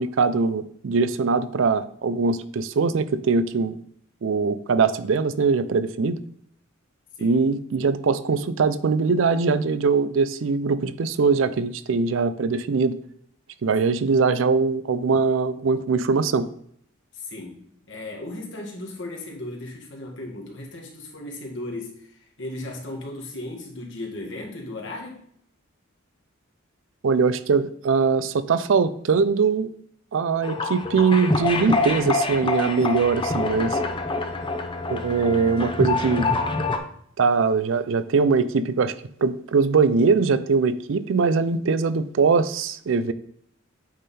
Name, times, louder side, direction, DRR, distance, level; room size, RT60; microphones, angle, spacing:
voice 1, 0.0-3.8 4.2-6.2 7.2-13.0 13.6-16.5 27.0-29.7 30.1-33.8 34.9-36.3 37.2-38.9 39.2-43.1, right 4 dB, 70° right, 14 dB, 0.4 m, -22 dB
voice 2, 17.1-25.2, left 2 dB, 60° left, -1 dB, 1.9 m, -36 dB
sound 1, 30.4-36.8, left 3 dB, 25° left, 0.6 m, -26 dB
8.5 x 3.7 x 4.2 m, 0.66 s
head